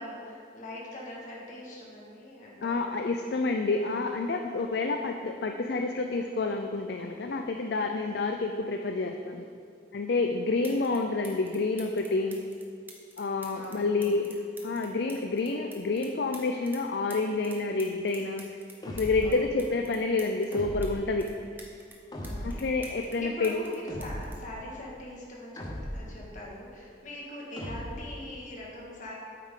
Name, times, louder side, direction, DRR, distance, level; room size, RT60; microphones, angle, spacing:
voice 1, 0.0-2.8 4.4-4.8 8.0-8.5 10.6-10.9 13.5-14.3 19.2-19.7 22.2-22.6 23.2-29.1, left 1 dB, 45° left, -4 dB, 1.7 m, -43 dB
voice 2, 2.6-9.4 9.9-12.4 13.2-14.3 14.6-21.3 22.4-23.6, left 3 dB, 60° left, 4 dB, 0.4 m, -29 dB
sound 1, 10.6-11.0 11.2-16.8 17.1-20.9 21.2-23.2 23.4-25.3 26.2-26.4, right 2 dB, 10° right, 0.9 m, -50 dB
sound 2, 18.8-19.5 20.5-21.2 22.1-22.8 23.9-24.5 25.6-26.2 27.6-28.2, equal, 20° left, 0.8 m, -37 dB
8.8 x 8.4 x 3.7 m, 2.3 s
head